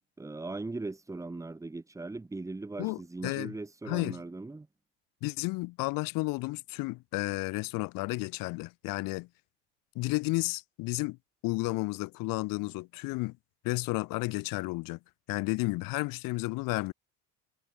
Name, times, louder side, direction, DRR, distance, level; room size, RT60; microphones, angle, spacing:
voice 1, 0.2-4.7, right 2 dB, 10° right, 2.9 m, -39 dB
voice 2, 2.8-3.5 3.8-4.2 5.2-9.3 9.9-11.2 11.4-13.4 13.6-15.0 15.3-16.9, left 23 dB, 60° left, 3.3 m, -32 dB
cardioid pair, 150°, 37 cm